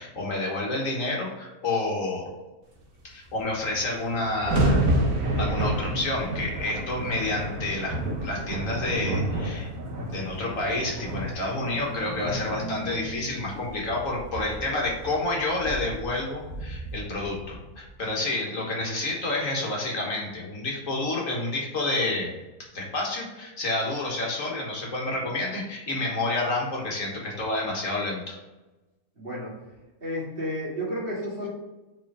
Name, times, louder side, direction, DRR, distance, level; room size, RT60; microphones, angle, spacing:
voice 1, 0.0-2.3 3.0-4.8 5.4-7.9 8.2-9.7 10.0-22.3 22.7-28.4, left 2 dB, 60° left, -2 dB, 1.7 m, -29 dB
sound 1, 3.3-3.4 3.6-17.9, right 1 dB, 65° right, 1.6 m, -30 dB
sound 2, 11.6-17.9, left 1 dB, 15° right, 1.6 m, -43 dB
voice 2, 29.2-29.5 30.0-31.5, equal, 40° right, -6 dB, 2.3 m, -31 dB
4.8 x 4.4 x 4.8 m, 1.1 s
omnidirectional pair, 1.6 m